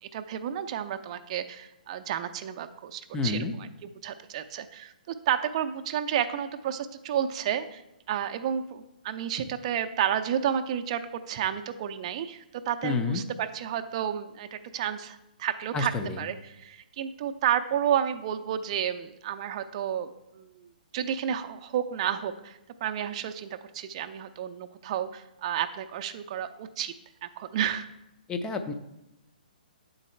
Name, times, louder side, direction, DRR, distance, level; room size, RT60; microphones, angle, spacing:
voice 1, 0.0-7.8 8.1-15.9 16.2-26.9 27.2-27.9, right 9 dB, 40° right, 8 dB, 0.5 m, -31 dB
voice 2, 3.1-3.5 12.8-13.2 15.7-16.2 28.3-28.7, left 4 dB, 15° left, 6 dB, 0.5 m, -29 dB
9.0 x 4.0 x 4.4 m, 0.90 s
figure-of-eight pair, 125°, 5 cm